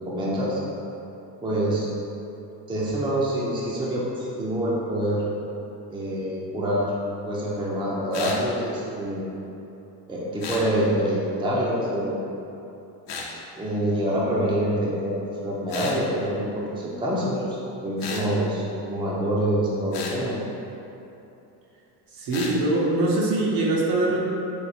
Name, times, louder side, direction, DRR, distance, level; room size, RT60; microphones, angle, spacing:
voice 1, 0.1-0.6 1.4-1.9 2.7-5.2 5.9-7.0 7.3-9.4 10.1-12.2 13.6-15.2 15.4-20.4, right 1 dB, 10° right, -5 dB, 0.6 m, -26 dB
sound 1, 8.1-8.4 10.4-10.7 13.1-13.3 15.7-16.0 18.0-18.3 19.9-20.2 22.3-22.5, left 4 dB, 80° left, 0.8 m, -33 dB
voice 2, 22.2-24.2, right 2 dB, 55° right, -3 dB, 0.8 m, -22 dB
4.9 x 2.2 x 4.2 m, 2.9 s
cardioid pair, 110°, 43 cm